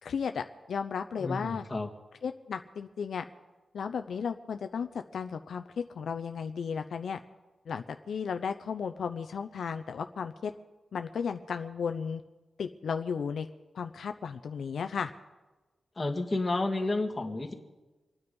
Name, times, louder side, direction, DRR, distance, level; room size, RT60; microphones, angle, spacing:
voice 1, 0.0-1.6 2.2-3.2 3.7-7.2 7.7-10.5 10.9-12.2 12.6-13.5 13.7-15.1, left 6 dB, 80° left, 8 dB, 0.7 m, -34 dB
voice 2, 1.2-1.9 16.0-17.5, left 2 dB, 30° left, 1 dB, 2.1 m, -31 dB
26.5 x 9.7 x 5.4 m, 1.2 s
wide cardioid pair, 95°, 0 cm